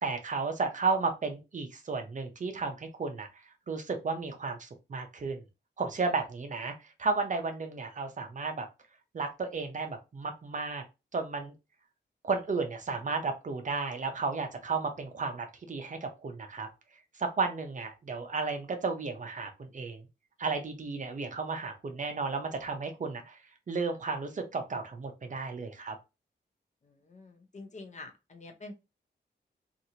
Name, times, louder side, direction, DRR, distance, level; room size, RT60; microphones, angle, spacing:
voice 1, 0.0-3.3 3.7-5.4 5.8-6.7 7.0-8.7 9.1-10.8 11.1-11.5 12.2-16.7 17.2-20.1 20.4-23.4 23.7-25.9, right 4 dB, 45° right, 5 dB, 0.6 m, -33 dB
voice 2, 26.8-28.7, left 3 dB, 40° left, 4 dB, 0.6 m, -47 dB
2.8 x 2.5 x 2.7 m, 0.27 s
wide cardioid pair, 135°, 19 cm